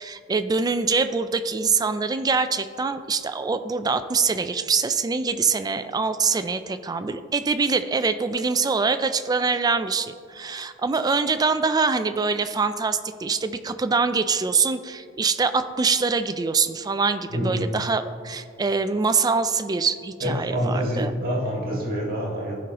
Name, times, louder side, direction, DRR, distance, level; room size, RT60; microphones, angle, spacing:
voice 1, 0.0-21.1, right 4 dB, 20° right, 11 dB, 0.3 m, -24 dB
voice 2, 17.3-17.7 20.2-22.6, equal, 50° right, -4 dB, 2.0 m, -26 dB
15.0 x 5.3 x 2.9 m, 2.2 s
head